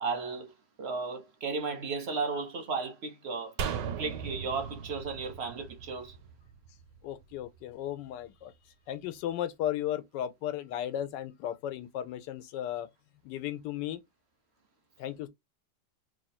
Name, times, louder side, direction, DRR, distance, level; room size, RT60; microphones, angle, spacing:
voice 1, 0.0-3.6 4.0-6.2, right 4 dB, 60° right, 0.7 m, -34 dB
sound 1, 3.6-6.9 7.2-7.3, right 7 dB, 90° right, 1.3 m, -37 dB
voice 2, 7.0-8.5 8.9-12.9 13.2-14.0 15.0-15.3, left 11 dB, 85° left, 1.2 m, -35 dB
3.0 x 2.5 x 4.0 m
omnidirectional pair, 1.8 m